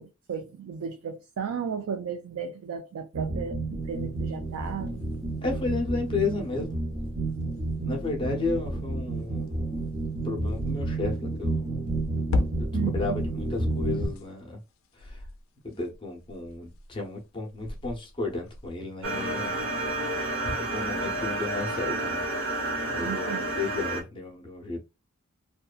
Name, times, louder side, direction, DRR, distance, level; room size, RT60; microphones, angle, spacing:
voice 1, 0.0-5.0 12.7-13.2 23.0-23.5, right 7 dB, 90° right, 0.4 m, -34 dB
sound 1, 3.1-14.1, right 2 dB, 35° right, 0.9 m, -31 dB
sound 2, 3.8-9.5 10.1-10.8 11.6-14.4 14.8-17.2 17.5-19.0 19.4-20.2, left 2 dB, 65° left, 0.4 m, -37 dB
voice 2, 5.4-6.8 7.8-9.9 10.2-11.8 12.6-13.1 13.5-14.6 14.9-15.2 15.6-19.7 20.1-22.2 22.9-24.9, left 3 dB, 25° left, 0.7 m, -33 dB
sound 3, 19.0-24.0, right 2 dB, 60° right, 0.9 m, -30 dB
2.6 x 2.2 x 2.3 m
head